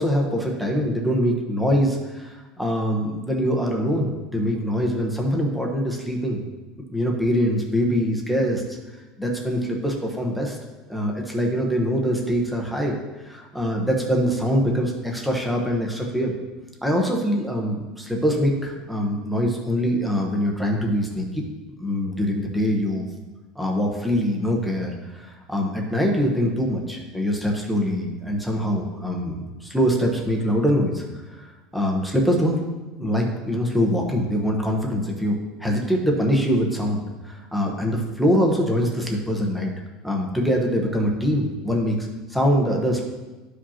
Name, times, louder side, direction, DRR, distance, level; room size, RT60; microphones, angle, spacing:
voice 1, 0.0-2.3 2.6-6.4 6.9-8.6 9.2-10.6 10.9-12.9 13.2-16.3 16.8-21.4 21.8-23.1 23.6-31.0 31.7-32.6 33.0-39.7 40.0-43.0, equal, ahead, -1 dB, 1.0 m, -23 dB
12.5 x 5.1 x 2.9 m, 1.2 s
cardioid pair, 150°, 0 cm